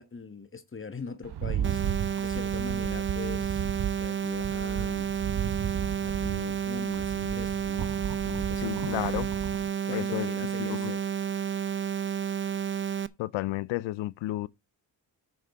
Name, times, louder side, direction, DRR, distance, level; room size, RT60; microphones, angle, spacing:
voice 1, 0.0-3.6 4.0-5.1 6.0-7.9 8.2-9.2 9.8-11.0, left 4 dB, 30° left, 1.3 m, -41 dB
Rattle, 1.2-9.7, right 9 dB, 60° right, 1.0 m, -34 dB
sound 1, 1.6-13.1, right 8 dB, 25° right, 0.6 m, -31 dB
voice 2, 8.6-9.3 9.9-10.3 10.6-10.9 13.2-14.5, left 17 dB, 90° left, 0.6 m, -32 dB
9.0 x 6.6 x 3.5 m
cardioid pair, 65°, 44 cm